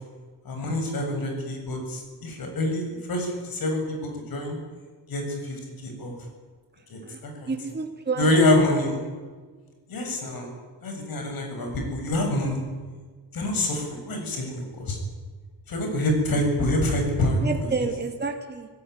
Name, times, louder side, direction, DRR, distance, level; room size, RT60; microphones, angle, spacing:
voice 1, 0.5-4.6 5.1-6.1 6.9-7.5 8.2-9.0 9.9-10.5 10.8-12.6 13.3-15.0 15.7-17.5, left 1 dB, 55° left, 3 dB, 7.6 m, -26 dB
voice 2, 7.5-8.3 17.4-18.7, right 4 dB, 25° right, 3 dB, 2.4 m, -29 dB
25.0 x 17.0 x 9.5 m, 1.5 s
cardioid pair, 145°, 42 cm